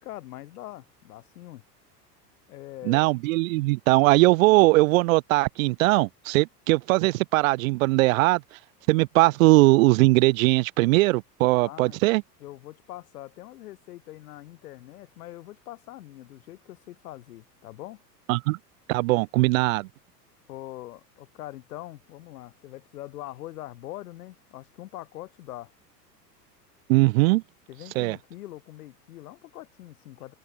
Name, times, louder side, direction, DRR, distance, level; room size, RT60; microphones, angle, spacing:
voice 1, 0.0-1.6 2.5-3.2 11.6-12.0 12.4-18.0 20.5-25.7 27.7-30.3, left 15 dB, 65° left, 5.6 m, -43 dB
voice 2, 2.8-8.4 8.9-12.2 18.3-18.6 18.9-19.9 26.9-27.4 28.0-28.2, right 22 dB, 55° right, 1.0 m, -20 dB
figure-of-eight pair, 85°, 49 cm